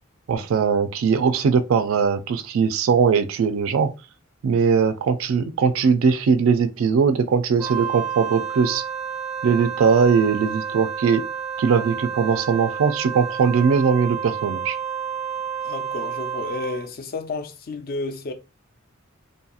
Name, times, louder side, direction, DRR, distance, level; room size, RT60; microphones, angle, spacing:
voice 1, 0.3-3.9 4.4-8.8 9.4-11.3 11.6-14.8, right 6 dB, 75° right, 0.3 m, -20 dB
Wind instrument woodwind instrument, 7.6-16.9, right 7 dB, 5° right, 0.4 m, -30 dB
voice 2, 15.6-18.3, left 3 dB, 45° left, 0.5 m, -31 dB
2.8 x 2.6 x 2.3 m
head